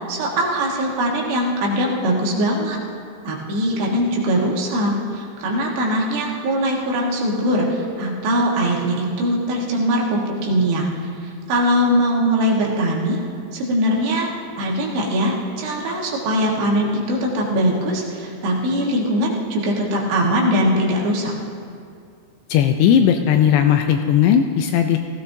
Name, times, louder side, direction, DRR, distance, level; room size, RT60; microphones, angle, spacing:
voice 1, 0.1-2.8 3.2-10.9 11.5-13.2 13.5-14.3 14.6-21.3, equal, 70° right, -2 dB, 3.5 m, -21 dB
voice 2, 22.5-25.0, left 9 dB, 80° left, 5 dB, 2.5 m, -16 dB
17.0 x 16.0 x 2.7 m, 2.4 s
omnidirectional pair, 5.3 m